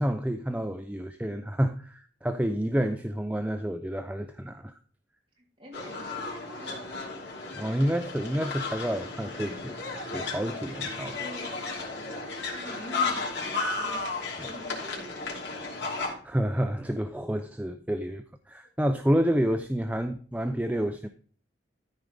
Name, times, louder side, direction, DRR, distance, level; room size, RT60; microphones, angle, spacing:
voice 1, 0.0-4.7 7.5-9.7 10.1-11.1 16.2-21.1, equal, 10° right, 0.5 m, -29 dB
voice 2, 5.4-7.1 9.4-9.8 10.9-12.1 12.5-14.1 14.4-15.7 18.6-18.7, equal, 30° right, 3.6 m, -46 dB
sound 1, 5.7-16.1, left 3 dB, 75° left, 3.1 m, -34 dB
13.5 x 4.8 x 5.1 m
head